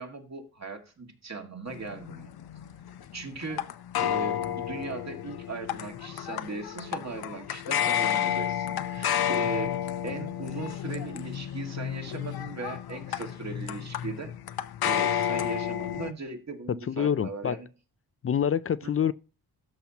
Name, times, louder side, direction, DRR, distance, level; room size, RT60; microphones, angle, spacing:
voice 1, 0.0-2.3 3.1-3.7 4.0-9.8 10.0-14.3 14.8-17.7 18.8-18.9, right 3 dB, 45° right, 2.0 m, -38 dB
sound 1, 1.7-16.1, left 10 dB, 70° left, 0.7 m, -31 dB
voice 2, 16.9-17.6 18.2-19.1, left 8 dB, 35° left, 0.4 m, -26 dB
13.0 x 5.6 x 2.8 m
cardioid pair, 95°, 39 cm